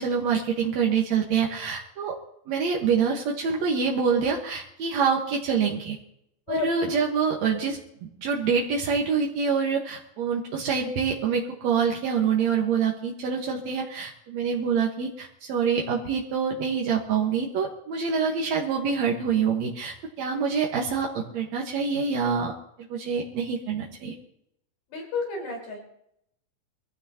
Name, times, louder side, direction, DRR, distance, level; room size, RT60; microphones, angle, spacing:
voice 1, 0.0-2.2 2.5-6.0 6.5-7.8 8.2-22.5 22.9-24.1, right 6 dB, 60° right, -1 dB, 1.9 m, -26 dB
voice 2, 6.5-7.0 24.9-25.8, left 3 dB, 70° left, 0 dB, 6.7 m, -31 dB
24.5 x 15.5 x 2.9 m, 0.77 s
omnidirectional pair, 5.0 m